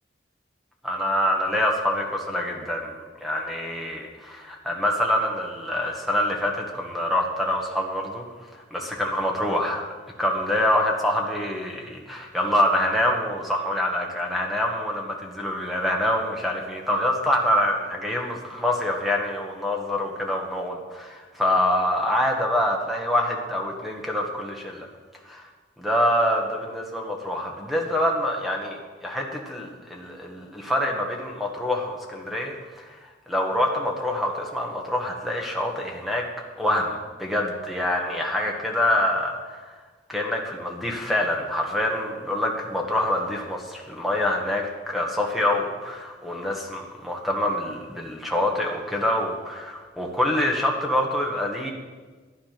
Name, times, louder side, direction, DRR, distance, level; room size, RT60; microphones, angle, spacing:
voice 1, 0.8-8.2 8.7-9.8 10.2-24.9 25.3-25.4 25.8-32.9 33.3-36.3 36.6-39.6 40.1-51.7, left 1 dB, ahead, 0 dB, 1.4 m, -26 dB
12.5 x 9.7 x 5.9 m, 1.4 s
head